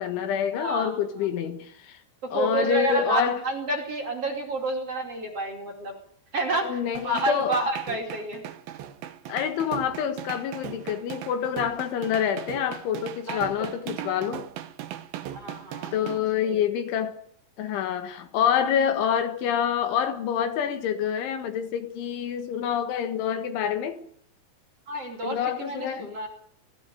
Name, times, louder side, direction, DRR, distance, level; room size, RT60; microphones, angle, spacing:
voice 1, 0.0-2.0 2.3-3.4 6.6-7.6 9.3-14.5 15.9-17.2 17.6-24.0 25.2-26.1, left 8 dB, 75° left, 3.9 m, -27 dB
voice 2, 0.5-1.0 2.2-6.0 6.3-8.4 13.3-13.7 14.0-14.1 15.3-15.9 16.4-16.6 24.9-26.3, right 2 dB, 35° right, 3.2 m, -29 dB
sound 1, 6.9-16.2, right 11 dB, 70° right, 2.4 m, -38 dB
18.0 x 16.5 x 9.3 m
omnidirectional pair, 5.7 m